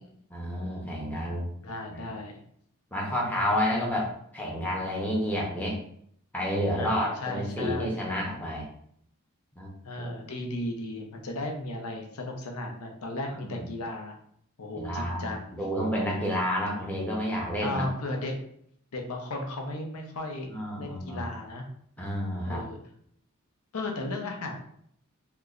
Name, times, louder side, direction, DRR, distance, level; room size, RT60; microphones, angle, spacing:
voice 1, 0.3-1.4 1.9-2.1 2.9-5.8 6.3-8.7 9.6-9.7 10.0-10.3 13.4-13.7 14.8-15.2 15.6-17.8 20.5-21.3 22.0-22.6, equal, 5° left, -3 dB, 0.6 m, -30 dB
voice 2, 1.6-2.3 3.7-3.9 6.8-8.0 9.8-14.1 14.6-15.6 16.7-16.9 17.6-18.4 18.9-21.6 22.4-22.8 23.7-24.6, left 1 dB, 90° left, 2 dB, 0.7 m, -35 dB
3.0 x 2.2 x 3.7 m, 0.67 s
head